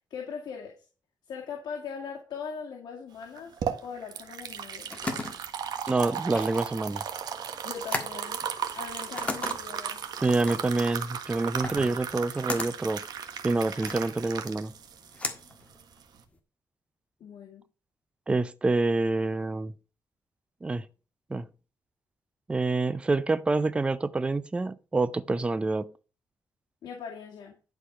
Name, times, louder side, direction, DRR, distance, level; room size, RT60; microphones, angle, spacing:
voice 1, 0.1-0.9 1.3-4.9 7.6-8.4 8.7-10.1 17.2-17.6 26.8-27.5, left 6 dB, 70° left, 2.1 m, -40 dB
sound 1, 3.2-16.2, right 8 dB, 65° right, 1.4 m, -36 dB
sound 2, 4.5-16.4, left 2 dB, 15° left, 1.6 m, -38 dB
voice 2, 5.9-7.0 10.2-13.0 13.4-14.7 18.3-19.7 20.6-20.8 21.3-21.5 22.5-25.9, right 3 dB, 15° right, 0.5 m, -27 dB
11.5 x 4.8 x 5.6 m
cardioid pair, 150°, 7 cm